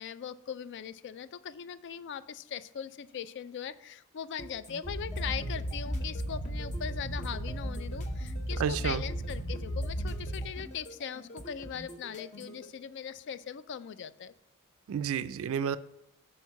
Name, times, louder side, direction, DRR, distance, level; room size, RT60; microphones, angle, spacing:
voice 1, 0.0-14.3, left 8 dB, 55° left, 15 dB, 0.3 m, -40 dB
sound 1, 4.4-12.7, equal, 35° left, 0.8 m, -47 dB
sound 2, 4.8-10.5, equal, ahead, 1.2 m, -35 dB
voice 2, 8.6-9.0 14.9-15.8, right 8 dB, 65° right, 14 dB, 0.3 m, -30 dB
6.3 x 4.4 x 5.8 m, 0.78 s
head